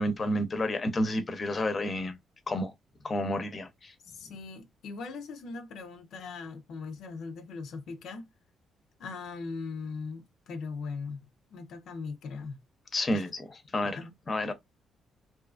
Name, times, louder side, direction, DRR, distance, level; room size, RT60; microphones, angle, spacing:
voice 1, 0.0-2.1 2.5-2.7 3.0-3.9 12.9-13.4 13.7-14.0 14.3-14.5, left 1 dB, 30° left, 0.6 m, -30 dB
voice 2, 4.1-8.3 9.0-12.6 13.1-13.2 13.8-14.1 14.5-14.6, left 4 dB, 75° left, 0.5 m, -40 dB
2.7 x 2.4 x 2.4 m
cardioid pair, 90°, 0 cm